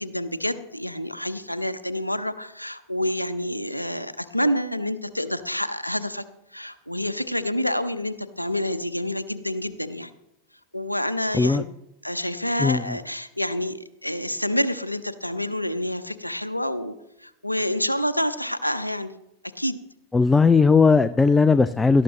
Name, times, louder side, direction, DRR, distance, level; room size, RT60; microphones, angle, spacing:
voice 1, 0.0-6.2 6.5-10.1 10.7-11.6 12.0-16.9 17.2-19.1 19.5-19.8, left 1 dB, 90° left, 13 dB, 0.7 m, -28 dB
voice 2, 12.6-13.0 20.1-22.0, left 4 dB, 10° left, 15 dB, 0.4 m, -18 dB
17.5 x 13.0 x 3.0 m, 0.82 s
figure-of-eight pair, 90°, 0 cm